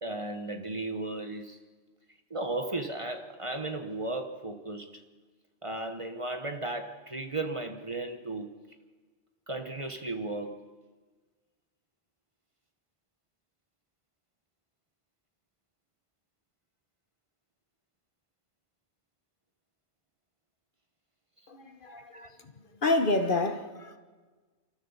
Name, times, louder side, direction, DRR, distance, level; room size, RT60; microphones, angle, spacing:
voice 1, 0.0-1.6 2.3-5.0 5.6-8.5 9.5-10.6 21.9-22.3, right 2 dB, 30° right, 1.2 m, -35 dB
voice 2, 21.5-22.5 22.8-24.0, left 2 dB, 55° left, 1.3 m, -29 dB
29.0 x 13.0 x 7.3 m
omnidirectional pair, 1.1 m